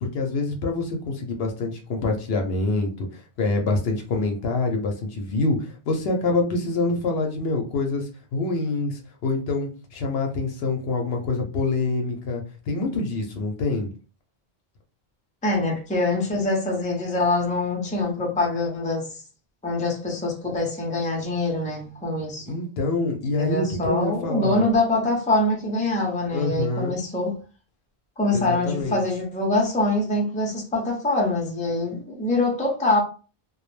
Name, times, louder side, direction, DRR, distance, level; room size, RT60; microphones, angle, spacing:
voice 1, 0.0-13.9 22.5-24.6 26.3-26.9 28.3-29.0, left 3 dB, 70° left, 0.8 m, -26 dB
voice 2, 15.4-19.1 19.6-22.6 23.4-27.3 28.2-33.0, left 2 dB, 10° left, 0.5 m, -24 dB
2.2 x 2.0 x 3.0 m
omnidirectional pair, 1.1 m